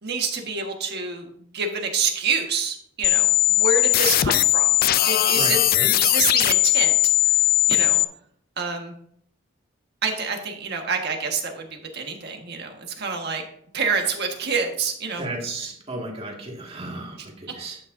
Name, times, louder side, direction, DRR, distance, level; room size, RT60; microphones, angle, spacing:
voice 1, 0.0-1.3 1.5-6.9 7.7-8.0 8.6-8.9 10.0-13.4 13.7-15.3, right 4 dB, 55° right, 3 dB, 1.6 m, -27 dB
sound 1, 3.0-8.0, left 16 dB, 50° left, 0.3 m, -19 dB
voice 2, 5.3-5.9 15.2-17.8, right 2 dB, 30° right, 0 dB, 2.0 m, -34 dB
11.5 x 8.6 x 2.7 m, 0.67 s
head